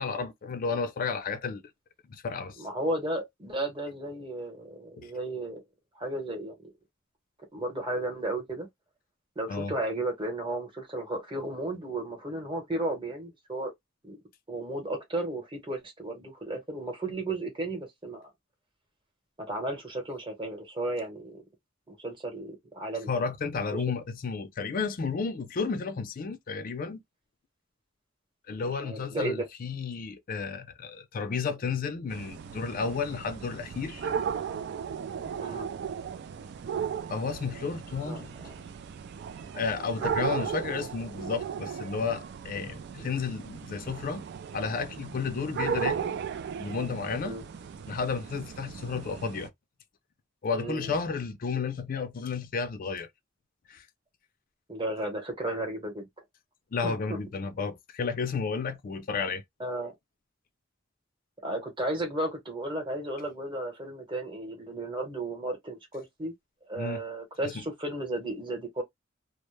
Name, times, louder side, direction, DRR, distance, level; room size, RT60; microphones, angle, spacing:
voice 1, 0.0-1.6 2.1-2.7 5.0-5.1 9.5-9.7 23.1-27.0 28.5-34.1 37.1-38.3 39.5-44.3 44.5-46.2 46.6-47.4 47.9-49.5 50.4-53.1 53.7-53.8 56.7-59.4 66.8-67.0 67.5-67.6, left 5 dB, 45° left, 0.4 m, -32 dB
voice 2, 2.6-5.6 5.9-6.7 7.5-8.7 9.4-13.7 14.0-14.2 14.5-18.3 19.4-21.4 21.9-23.1 23.7-23.8 28.6-29.5 35.4-35.7 38.0-38.6 40.0-40.5 47.2-47.4 50.5-50.9 54.7-56.1 56.8-57.2 59.6-59.9 61.4-66.3 66.7-68.8, right 1 dB, 25° right, 1.0 m, -34 dB
sound 1, 32.1-49.5, right 7 dB, 55° right, 0.3 m, -36 dB
2.1 x 2.0 x 3.0 m
head